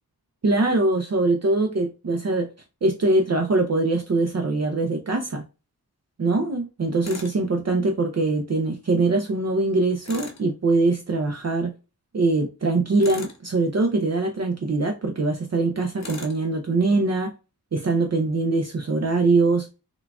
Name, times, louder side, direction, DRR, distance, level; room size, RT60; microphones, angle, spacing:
voice 1, 0.4-2.5 2.8-5.4 6.2-11.7 12.1-17.3 17.7-19.7, right 2 dB, 45° right, 0.5 m, -22 dB
Tools, 7.0-7.4 10.0-10.5 13.0-13.4 16.0-16.4, left 3 dB, 45° left, 0.8 m, -37 dB
3.7 x 2.3 x 2.3 m
cardioid pair, 40°, 39 cm